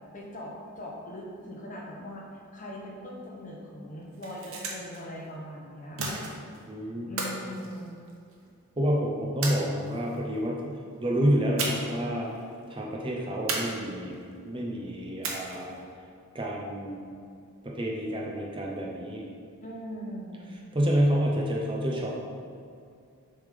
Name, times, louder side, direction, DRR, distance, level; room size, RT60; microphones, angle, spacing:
voice 1, 0.1-6.2 7.1-7.9 19.6-20.6, equal, 35° left, -2 dB, 0.9 m, -41 dB
sound 1, 4.0-5.0 6.0-6.6 7.2-8.4 9.4-10.2 11.6-12.0 12.3-12.4 13.5-14.2 15.2-15.8, right 3 dB, 70° right, 1.0 m, -34 dB
voice 2, 6.7-7.1 8.8-12.3 12.7-15.8 16.3-17.0 17.6-19.2 20.7-22.2, equal, 25° right, -2 dB, 0.6 m, -28 dB
7.0 x 3.5 x 5.0 m, 2.4 s
head